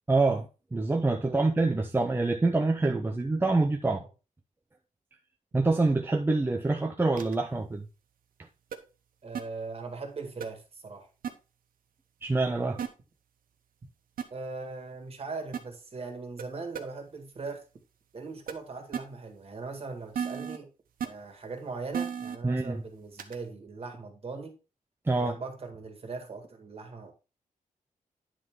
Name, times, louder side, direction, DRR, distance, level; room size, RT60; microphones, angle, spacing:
voice 1, 0.1-4.0 5.5-7.9 12.2-12.8 22.4-22.8 25.1-25.4, right 3 dB, 15° right, 0.6 m, -26 dB
sound 1, 7.2-7.4 8.7-8.8 9.3-9.4 10.4-10.5 11.2-11.3 12.8-12.9 14.2-14.3 15.5-15.6 16.4-16.5 16.7-16.8 18.5-18.6 18.9-19.0 20.1-20.6 21.0-21.1 21.9-22.4 23.2-23.4, right 7 dB, 90° right, 1.0 m, -32 dB
voice 2, 9.2-11.1 14.3-17.6 18.1-20.7 21.0-24.5 25.2-27.1, right 4 dB, 45° right, 1.8 m, -40 dB
10.0 x 3.7 x 4.6 m
wide cardioid pair, 130°, 14 cm